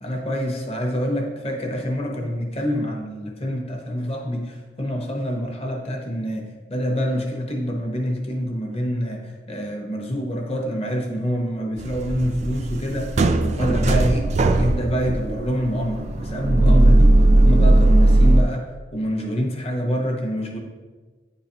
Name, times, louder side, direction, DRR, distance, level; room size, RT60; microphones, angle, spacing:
voice 1, 0.0-14.3 14.5-17.1 17.4-20.6, equal, 35° left, 1 dB, 0.9 m, -26 dB
sound 1, 11.8-18.4, right 1 dB, 40° right, 0.3 m, -17 dB
9.1 x 3.9 x 2.9 m, 1.3 s
head